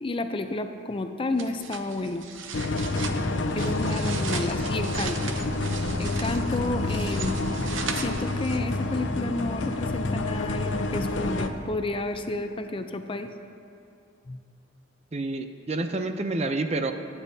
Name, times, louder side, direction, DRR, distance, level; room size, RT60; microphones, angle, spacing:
voice 1, 0.0-2.2 3.5-5.4 6.0-7.3 8.0-13.3 14.3-14.4, left 2 dB, 25° left, 7 dB, 0.5 m, -31 dB
sound 1, 1.4-8.8, right 6 dB, 80° right, 0.8 m, -38 dB
sound 2, 2.5-11.5, left 2 dB, 75° left, 0.7 m, -28 dB
voice 2, 15.1-16.9, right 2 dB, 35° right, 7 dB, 0.5 m, -28 dB
20.0 x 9.8 x 2.7 m, 2.5 s
head